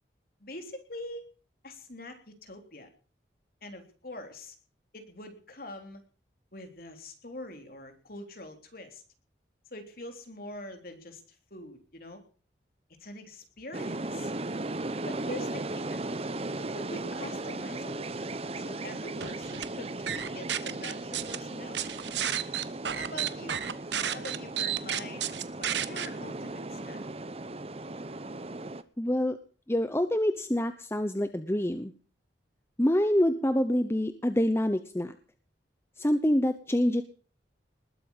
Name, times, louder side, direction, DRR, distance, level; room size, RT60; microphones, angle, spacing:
voice 1, 0.4-1.2 1.6-2.9 3.6-4.5 4.9-6.0 6.5-9.0 9.7-12.2 13.0-14.3 15.0-16.1 16.7-18.1 18.5-22.0 22.9-23.6 24.0-25.3 25.6-27.0, left 1 dB, 50° left, 5 dB, 3.5 m, -44 dB
sound 1, 13.7-28.8, right 2 dB, 30° right, 0.9 m, -37 dB
sound 2, 19.2-19.7 20.1-21.4 21.7-26.1, right 9 dB, 70° right, 1.2 m, -31 dB
voice 2, 29.0-29.4 29.7-31.9 32.8-35.1 36.0-37.0, left 1 dB, 15° left, 10 dB, 0.8 m, -26 dB
20.0 x 8.8 x 7.2 m, 0.40 s
head